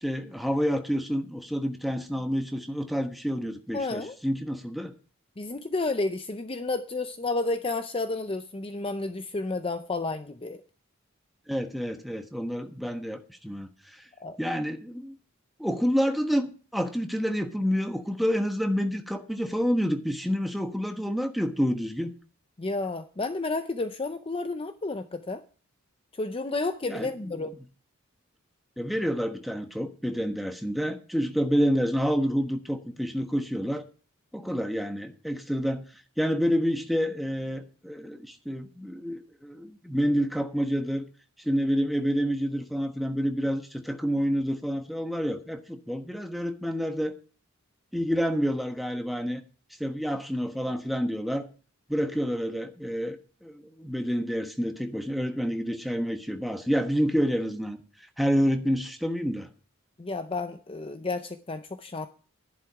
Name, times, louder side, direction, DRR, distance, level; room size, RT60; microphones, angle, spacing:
voice 1, 0.0-4.9 11.5-14.0 14.4-15.1 15.6-22.1 26.9-27.1 28.8-33.8 34.3-35.8 36.2-41.1 41.4-47.1 47.9-49.4 49.8-51.5 51.9-57.8 58.2-59.5, equal, ahead, 1.2 m, -28 dB
voice 2, 3.7-4.2 5.4-10.6 14.2-14.4 22.6-25.4 26.1-27.5 60.0-62.1, left 3 dB, 25° left, 0.6 m, -31 dB
11.5 x 11.0 x 4.7 m
head